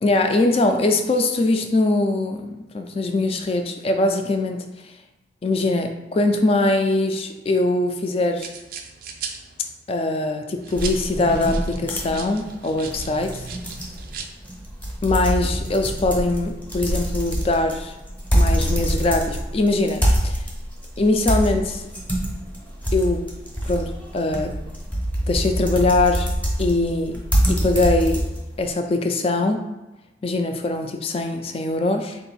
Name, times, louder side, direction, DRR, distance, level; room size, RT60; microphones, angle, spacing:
voice 1, 0.0-4.9 5.4-8.5 9.9-13.4 15.0-17.9 18.3-20.4 21.0-21.8 22.9-23.3 23.7-24.6 25.3-26.3 26.6-28.3 28.6-29.6 30.2-32.2, left 2 dB, 30° left, 5 dB, 0.3 m, -22 dB
sound 1, 8.4-9.9 10.5-14.3, right 6 dB, 50° right, 0.4 m, -38 dB
sound 2, 10.8-28.7, equal, 10° left, 0.7 m, -25 dB
3.8 x 2.5 x 4.0 m, 1.0 s
head